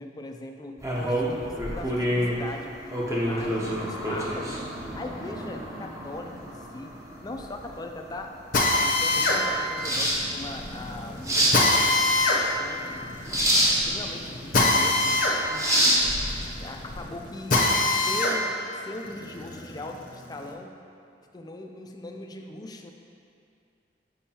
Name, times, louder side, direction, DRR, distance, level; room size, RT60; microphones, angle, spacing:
voice 1, 0.0-2.7 3.2-4.7 4.9-6.9 7.2-8.3 8.8-11.9 12.6-12.9 13.5-15.8 16.6-17.6 18.1-20.7 21.3-22.9, left 1 dB, 20° left, 3 dB, 0.4 m, -39 dB
sound 1, 0.8-17.0, equal, 15° right, 0.7 m, -28 dB
Drill, 8.5-18.4 18.8-20.4, left 2 dB, 50° left, 0.7 m, -25 dB
7.1 x 5.3 x 2.8 m, 2.5 s
head